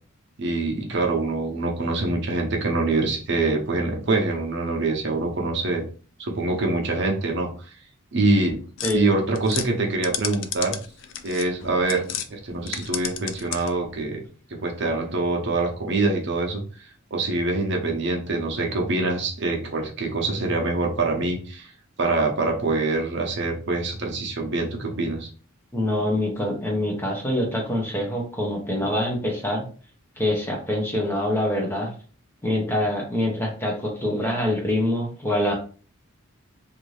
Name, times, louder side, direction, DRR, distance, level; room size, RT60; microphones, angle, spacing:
voice 1, 0.4-5.8 6.2-7.7 8.1-8.6 8.9-10.8 11.2-14.2 14.5-21.7 22.0-25.3, right 2 dB, 55° right, 1 dB, 0.7 m, -25 dB
sound 1, 8.8-12.3 12.6-13.9, left 9 dB, 60° left, 0.3 m, -33 dB
voice 2, 25.7-29.7 30.2-31.9 32.4-35.5, left 1 dB, 10° left, -1 dB, 0.7 m, -25 dB
2.6 x 2.6 x 3.1 m, 0.40 s
head